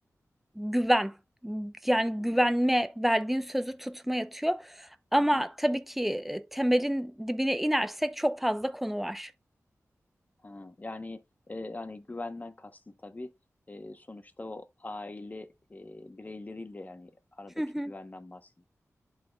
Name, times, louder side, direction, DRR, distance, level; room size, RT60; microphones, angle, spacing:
voice 1, 0.6-1.1 1.4-9.3 17.6-17.9, equal, 5° right, 0.6 m, -28 dB
voice 2, 10.4-13.3 13.7-18.6, left 2 dB, 30° left, 0.8 m, -42 dB
11.0 x 4.1 x 2.3 m
wide cardioid pair, 85°, 6 cm